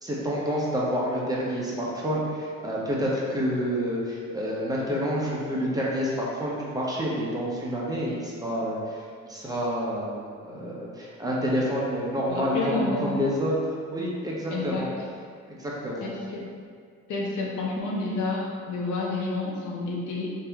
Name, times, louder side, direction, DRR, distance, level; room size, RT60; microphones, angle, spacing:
voice 1, 0.0-8.8 9.3-13.6 13.9-14.9 15.6-16.1, equal, 10° right, -5 dB, 0.9 m, -28 dB
voice 2, 12.3-13.1 14.5-14.9 16.0-16.5 17.1-20.3, left 3 dB, 75° left, -2 dB, 0.8 m, -30 dB
3.3 x 2.8 x 3.5 m, 2.1 s
cardioid pair, 90°, 30 cm